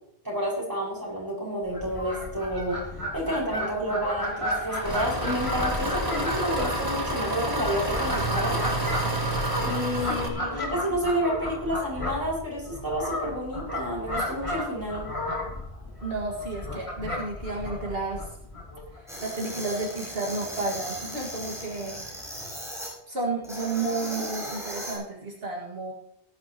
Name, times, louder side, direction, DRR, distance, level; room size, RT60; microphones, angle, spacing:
voice 1, 0.2-8.6 9.6-15.0, equal, 20° right, -5 dB, 5.8 m, -30 dB
Fowl, 1.7-19.0, left 1 dB, 30° left, 3.1 m, -33 dB
Engine, 4.8-10.3, right 1 dB, 40° right, 2.1 m, -29 dB
voice 2, 10.1-10.8 16.0-18.3 18.9-22.3 23.1-25.9, right 3 dB, 70° right, -2 dB, 2.1 m, -32 dB
sound 1, 19.1-22.9 23.4-25.0, equal, 5° right, 5.3 m, -37 dB
18.5 x 10.5 x 3.0 m, 0.76 s
omnidirectional pair, 1.0 m